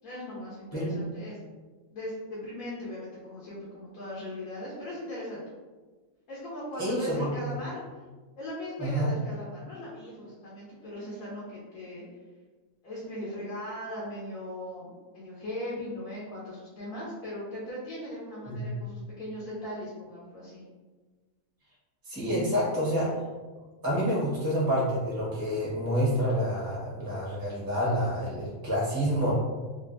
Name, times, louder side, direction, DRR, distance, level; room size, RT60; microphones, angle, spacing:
voice 1, 0.0-1.4 1.9-5.4 6.3-8.0 8.4-12.0 12.8-20.6, left 1 dB, 70° left, -7 dB, 1.2 m, -39 dB
voice 2, 6.8-7.5 8.8-9.1 18.5-18.6 22.0-23.2 23.8-29.3, equal, 15° right, -7 dB, 1.0 m, -28 dB
3.2 x 2.5 x 2.6 m, 1.3 s
omnidirectional pair, 1.6 m